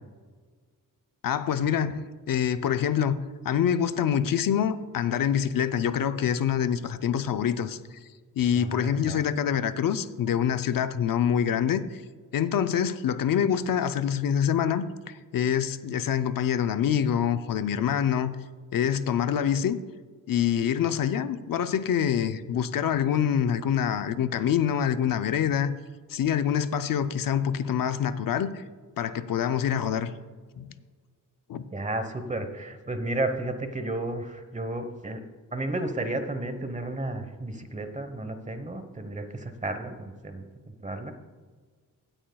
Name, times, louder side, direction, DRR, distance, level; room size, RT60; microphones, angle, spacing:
voice 1, 1.2-3.2 3.4-7.8 8.4-12.0 12.3-18.3 18.7-19.8 20.3-25.7 26.1-28.6 29.0-30.1 30.6-30.7 31.5-31.6, left 8 dB, 75° left, 11 dB, 0.6 m, -26 dB
voice 2, 8.5-9.2 20.8-20.9 31.7-35.2 35.5-41.1, right 2 dB, 20° right, 8 dB, 1.0 m, -33 dB
17.0 x 8.7 x 2.3 m, 1.5 s
wide cardioid pair, 110°, 34 cm